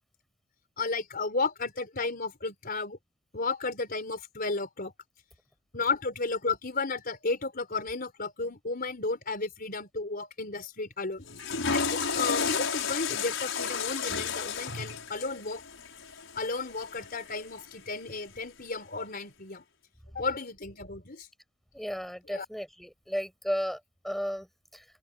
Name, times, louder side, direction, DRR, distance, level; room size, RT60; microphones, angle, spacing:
voice 1, 0.8-3.0 3.3-4.9 5.7-11.2 11.7-15.6 16.4-19.6 20.1-21.3 22.3-22.5, left 3 dB, 50° left, 4.2 m, -33 dB
Water / Toilet flush, 11.2-17.5, left 5 dB, 75° left, 6.7 m, -32 dB
voice 2, 21.7-24.8, equal, ahead, 6.3 m, -34 dB
open air
head